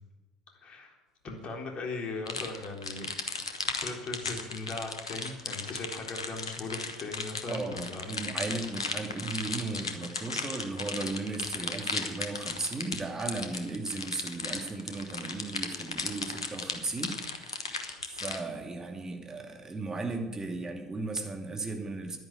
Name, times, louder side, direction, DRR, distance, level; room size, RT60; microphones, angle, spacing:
voice 1, 0.6-1.0 1.2-3.1 3.6-8.1, left 3 dB, 40° left, 2 dB, 3.7 m, -38 dB
sound 1, 2.3-18.4, left 4 dB, 85° left, 1.2 m, -36 dB
voice 2, 7.4-17.8 18.1-22.2, right 3 dB, 20° right, 3 dB, 2.5 m, -36 dB
10.5 x 10.5 x 9.3 m, 1.1 s
figure-of-eight pair, 65°, 3 cm